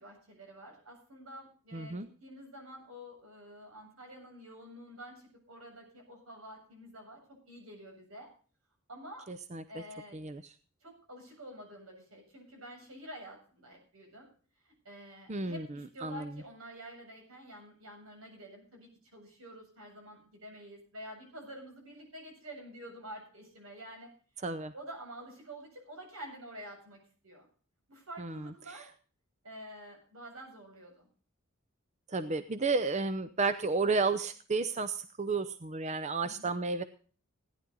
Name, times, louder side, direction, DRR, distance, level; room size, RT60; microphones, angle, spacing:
voice 1, 0.0-8.3 8.9-9.3 9.7-10.2 10.8-14.3 14.6-24.1 24.3-27.5 27.9-28.9 29.4-31.1 36.2-36.6, equal, 85° right, 1 dB, 7.9 m, -49 dB
voice 2, 1.7-2.1 9.3-9.6 10.1-10.4 15.3-15.7 16.0-16.3 24.4-24.7 28.2-28.8 32.1-36.8, right 4 dB, 35° right, 11 dB, 0.7 m, -32 dB
17.0 x 11.0 x 3.9 m, 0.41 s
head